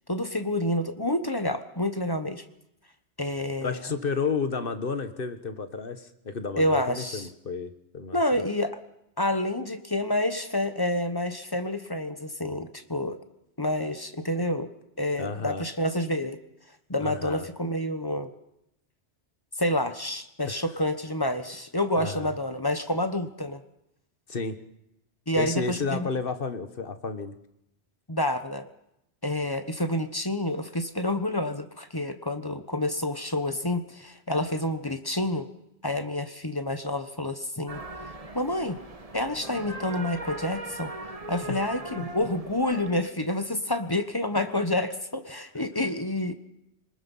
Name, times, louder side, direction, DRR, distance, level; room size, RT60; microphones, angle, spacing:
voice 1, 0.1-2.4 3.2-3.8 6.6-7.3 8.1-8.8 9.2-13.2 13.6-14.7 15.0-16.4 16.9-18.3 19.6-23.6 25.3-26.1 28.1-28.7 29.2-35.5 35.8-37.8 38.3-38.8 39.1-40.9 41.3-46.3, left 1 dB, 20° left, 9 dB, 1.3 m, -28 dB
voice 2, 3.6-8.2 15.2-15.6 17.0-17.5 20.4-20.6 21.9-22.3 24.3-24.6 25.4-27.3 41.5-41.7 42.0-42.1, left 4 dB, 55° left, 9 dB, 1.6 m, -32 dB
sound 1, 37.7-42.9, right 2 dB, 35° right, 1.5 m, -39 dB
27.5 x 20.0 x 5.6 m, 0.83 s
omnidirectional pair, 1.1 m